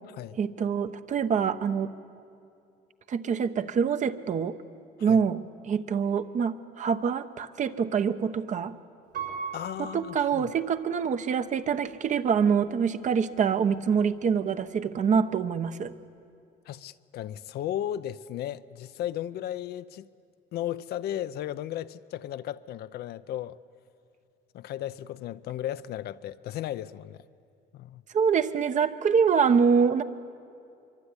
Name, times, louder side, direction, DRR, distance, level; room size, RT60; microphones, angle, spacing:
voice 1, 0.4-1.9 3.1-4.6 5.0-8.7 9.8-15.9 28.1-30.0, right 6 dB, 45° right, 10 dB, 1.0 m, -25 dB
Piano, 9.1-11.1 11.7-11.8, right 5 dB, 75° right, 6.6 m, -39 dB
voice 2, 9.5-10.5 16.7-20.1 20.5-23.6 24.5-27.2 27.7-28.0, left 12 dB, 70° left, 13 dB, 0.7 m, -35 dB
24.0 x 24.0 x 9.8 m, 2.5 s
cardioid pair, 110°, 17 cm